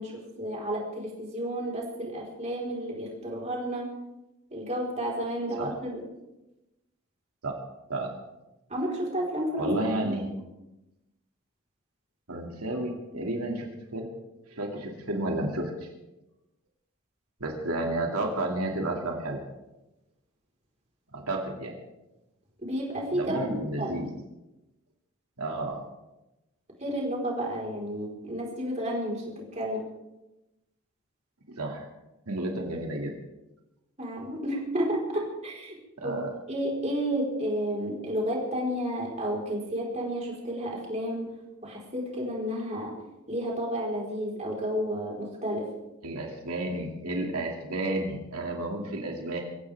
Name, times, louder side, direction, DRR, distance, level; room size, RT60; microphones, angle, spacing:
voice 1, 0.0-3.9 4.5-6.0 8.7-9.7 10.0-10.2 22.6-24.0 26.8-29.8 34.0-35.8 36.0-36.2 36.5-41.3 41.6-42.9 43.3-45.7, equal, 30° right, -3 dB, 4.6 m, -31 dB
voice 2, 9.6-10.3 12.3-14.1 14.5-15.9 17.4-19.4 21.1-21.7 23.1-24.1 25.4-25.8 31.5-31.9 32.3-33.1 36.0-36.3 46.0-49.4, right 1 dB, 90° right, 1 dB, 2.6 m, -31 dB
23.5 x 16.0 x 3.6 m, 0.97 s
head